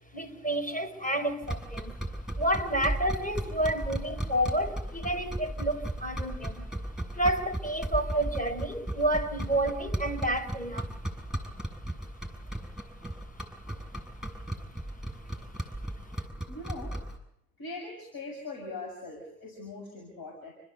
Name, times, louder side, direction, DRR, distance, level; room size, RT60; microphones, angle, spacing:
voice 1, 0.1-1.9 2.4-6.7 7.1-10.9, right 1 dB, 15° left, 3 dB, 5.7 m, -30 dB
sound 1, 1.4-17.2, right 1 dB, ahead, 7.6 m, -36 dB
voice 2, 16.5-16.9 17.6-20.5, left 2 dB, 55° left, 2 dB, 7.3 m, -41 dB
29.5 x 14.5 x 8.2 m, 0.75 s
hypercardioid pair, 65°, 44 cm